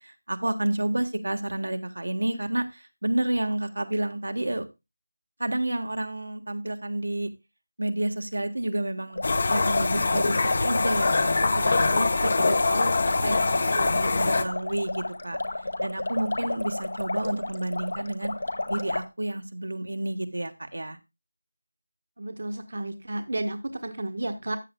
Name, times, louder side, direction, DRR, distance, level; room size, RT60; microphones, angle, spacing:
voice 1, 0.0-4.7 5.4-7.3 7.8-9.2 9.5-15.4 15.8-18.3 18.7-21.0, right 1 dB, 80° right, 5 dB, 1.4 m, -30 dB
sound 1, 9.1-19.0, left 2 dB, 65° left, 1.6 m, -32 dB
sound 2, 9.2-14.4, left 3 dB, 40° left, 0.9 m, -24 dB
voice 2, 22.2-24.6, right 2 dB, 60° right, 6 dB, 1.3 m, -32 dB
14.0 x 7.9 x 2.2 m, 0.24 s
figure-of-eight pair, 170°, 0 cm